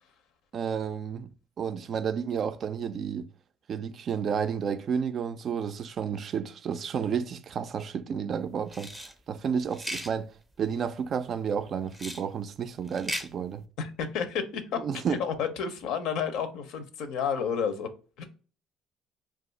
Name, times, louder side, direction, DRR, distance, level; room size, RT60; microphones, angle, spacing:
voice 1, 0.5-1.3 1.6-3.2 3.7-8.9 9.3-10.3 10.6-13.6 14.8-15.2, right 7 dB, 50° right, 0.3 m, -31 dB
sound 1, 8.7-9.1 9.7-10.1 11.9-12.2 12.9-13.3, equal, ahead, 0.5 m, -36 dB
voice 2, 13.8-17.9 18.2-18.3, left 7 dB, 75° left, 0.5 m, -31 dB
2.4 x 2.3 x 3.8 m
supercardioid pair, 85°, 0 cm